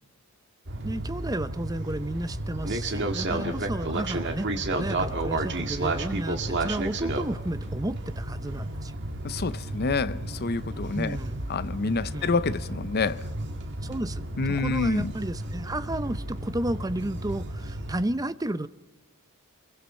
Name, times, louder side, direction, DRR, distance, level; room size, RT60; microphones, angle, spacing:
sound 1, 0.7-18.0, right 2 dB, 50° right, 1.9 m, -32 dB
voice 1, 0.8-8.9 10.9-11.4 12.1-12.4 13.8-18.7, right 1 dB, 15° right, 0.6 m, -32 dB
voice 2, 9.2-11.2 11.5-13.2 14.4-15.1, left 3 dB, 45° left, 0.7 m, -28 dB
29.0 x 22.5 x 4.3 m
head